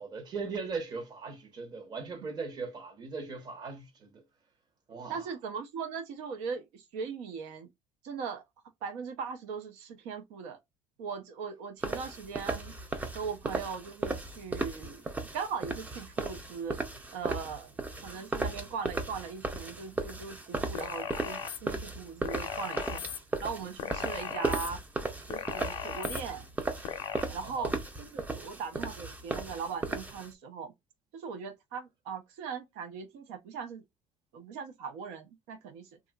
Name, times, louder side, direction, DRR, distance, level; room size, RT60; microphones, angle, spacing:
voice 1, 0.0-4.2 4.9-5.3 17.3-17.5 27.4-27.7, right 4 dB, 35° right, 0.9 m, -39 dB
voice 2, 5.1-7.7 8.0-8.4 8.8-10.6 11.0-12.7 13.1-15.0 15.3-16.8 17.1-17.7 18.0-23.0 23.4-24.8 25.3-26.5 27.3-30.7 31.1-33.8 34.3-35.9, right 6 dB, 90° right, 0.6 m, -39 dB
sound 1, 11.8-30.3, right 3 dB, 15° right, 0.4 m, -36 dB
sound 2, 20.7-21.6 22.2-23.2 23.8-24.7 25.3-26.2 26.8-27.2, left 8 dB, 45° left, 0.5 m, -37 dB
2.9 x 2.4 x 2.2 m
cardioid pair, 135°, 12 cm